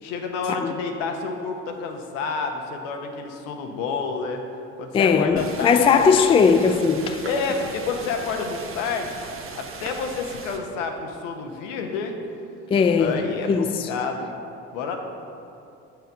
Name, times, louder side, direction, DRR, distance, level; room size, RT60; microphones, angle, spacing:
voice 1, 0.0-4.4 4.8-5.8 7.3-9.2 9.5-12.2 13.0-14.4 14.7-15.0, left 4 dB, 80° left, 0.9 m, -29 dB
voice 2, 4.9-7.3 12.7-13.9, left 5 dB, 15° left, 0.3 m, -19 dB
sound 1, 5.4-10.6, right 4 dB, 35° right, 1.0 m, -38 dB
6.5 x 4.7 x 6.3 m
hypercardioid pair, 60°, 37 cm